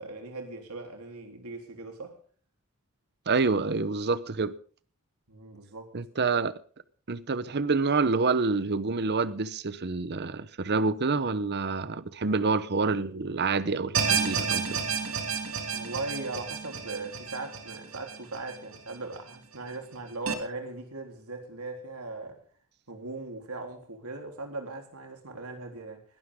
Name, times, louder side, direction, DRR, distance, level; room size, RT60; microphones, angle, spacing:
voice 1, 0.0-2.2 5.3-5.9 15.7-22.4 22.9-26.0, right 3 dB, 90° right, 3.5 m, -39 dB
voice 2, 3.3-4.5 5.9-6.5 7.1-14.8, right 4 dB, 50° right, 0.8 m, -27 dB
sound 1, 13.9-19.2 19.5-19.6 20.3-20.4, right 6 dB, 70° right, 1.8 m, -31 dB
21.0 x 12.5 x 3.7 m
head